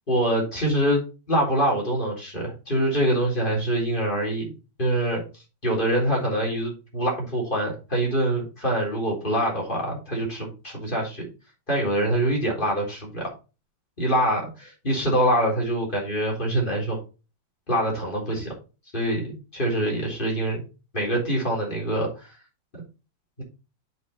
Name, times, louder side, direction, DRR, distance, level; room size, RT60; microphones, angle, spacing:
voice 1, 0.1-1.0 1.3-4.5 4.8-5.2 5.6-11.3 11.7-13.3 14.0-17.0 17.7-18.5 18.9-20.6 20.9-22.3, right 1 dB, 20° left, -1 dB, 3.9 m, -25 dB
7.6 x 6.2 x 4.2 m, 0.31 s
omnidirectional pair, 2.4 m